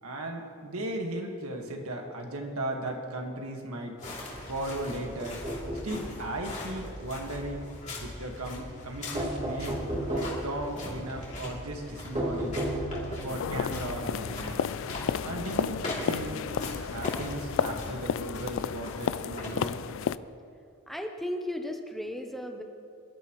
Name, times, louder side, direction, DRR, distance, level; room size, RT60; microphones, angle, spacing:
voice 1, 0.0-4.0 4.5-5.4 5.8-7.7 8.0-9.8 10.1-12.6 13.2-14.8 15.2-16.4 16.9-19.8, right 1 dB, 80° right, 2 dB, 1.7 m, -36 dB
sound 1, 4.0-20.0, left 1 dB, 35° left, 2.8 m, -40 dB
sound 2, 5.2-6.2 9.1-10.5 12.1-13.3, right 1 dB, 25° right, 2.3 m, -32 dB
sound 3, 13.3-20.2, left 7 dB, 60° left, 0.3 m, -32 dB
voice 2, 20.9-22.6, left 1 dB, ahead, 4 dB, 0.7 m, -35 dB
22.5 x 12.5 x 3.1 m, 2.5 s
head